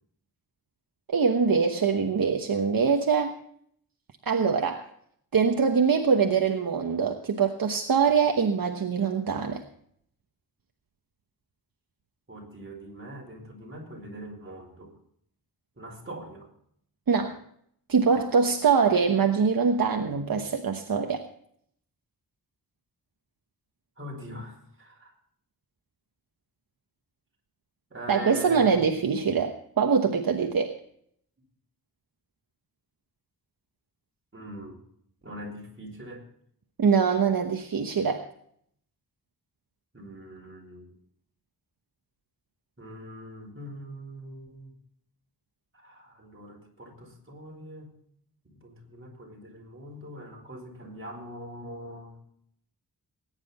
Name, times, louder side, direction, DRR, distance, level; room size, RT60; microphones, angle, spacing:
voice 1, 1.1-3.3 4.3-4.9 5.3-9.6 17.1-17.4 17.9-21.2 28.1-30.8 36.8-38.2, right 5 dB, 65° right, 4 dB, 1.2 m, -23 dB
voice 2, 12.3-14.9 15.8-16.5 24.0-25.1 27.9-28.8 34.3-34.8 35.2-36.3 39.9-40.9 42.8-44.7 45.7-47.9 48.4-52.2, right 1 dB, 35° right, 0 dB, 4.7 m, -42 dB
20.0 x 10.0 x 4.2 m, 0.67 s
wide cardioid pair, 130°, 38 cm